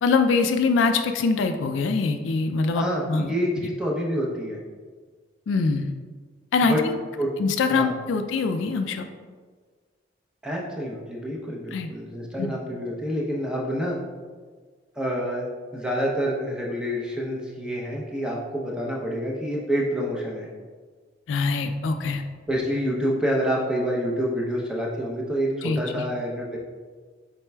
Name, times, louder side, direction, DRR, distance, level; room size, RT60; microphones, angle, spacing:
voice 1, 0.0-3.3 5.5-5.9 6.5-7.0 7.4-9.0 11.7-11.9 12.4-12.6 21.3-22.2 25.6-26.1, left 4 dB, 75° left, 7 dB, 0.3 m, -23 dB
voice 2, 2.7-4.6 6.6-6.8 7.2-7.3 7.7-7.9 10.4-14.0 15.0-15.5 15.7-20.5 22.5-26.6, equal, 5° right, -3 dB, 0.6 m, -27 dB
4.4 x 4.0 x 2.2 m, 1.5 s
head